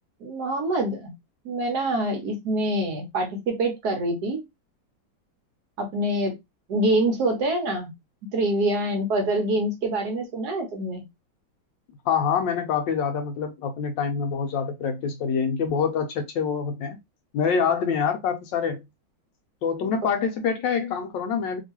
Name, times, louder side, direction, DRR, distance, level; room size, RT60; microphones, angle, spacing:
voice 1, 0.2-1.1 1.4-4.4 5.8-6.4 6.7-7.9 8.3-11.0 20.0-20.1, right 1 dB, 60° right, 1.2 m, -25 dB
voice 2, 12.1-17.0 17.3-18.8 19.6-21.6, left 6 dB, 75° left, 1.2 m, -25 dB
3.0 x 2.9 x 2.8 m
omnidirectional pair, 2.2 m